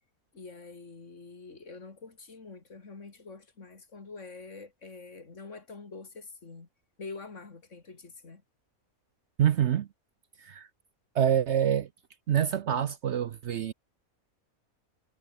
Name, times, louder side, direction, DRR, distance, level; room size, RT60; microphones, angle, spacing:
voice 1, 0.3-6.7 7.0-8.4, left 4 dB, 55° left, 2.8 m, -46 dB
voice 2, 9.4-9.9 10.4-10.7 11.1-11.9 12.3-13.7, right 9 dB, 60° right, 0.9 m, -26 dB
omnidirectional pair, 1.5 m